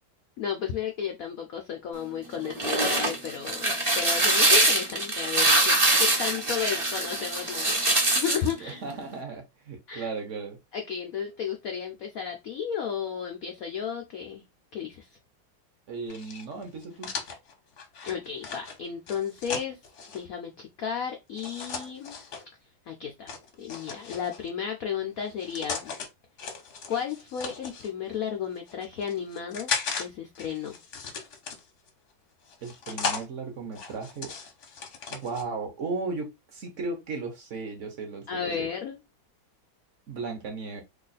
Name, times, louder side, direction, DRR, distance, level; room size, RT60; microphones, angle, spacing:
voice 1, 0.4-7.8 8.1-8.8 9.9-10.1 10.7-14.4 14.7-15.1 18.0-19.8 20.1-22.2 22.9-23.3 23.6-25.9 26.9-29.7 30.0-30.8 38.3-39.0, left 7 dB, 90° left, 0.7 m, -33 dB
sound 1, 2.4-8.5, right 2 dB, 35° right, 0.4 m, -23 dB
voice 2, 8.6-10.6 15.9-17.1 32.6-34.3 35.1-38.7 40.1-40.8, right 4 dB, 60° right, 0.8 m, -36 dB
sound 2, 16.1-20.2 21.3-22.4 23.3-24.5 25.2-26.1 26.4-27.9 28.5-30.0 30.3-31.9 32.5-33.2 33.7-35.4, left 5 dB, 60° left, 0.8 m, -36 dB
3.1 x 2.4 x 3.9 m
omnidirectional pair, 2.2 m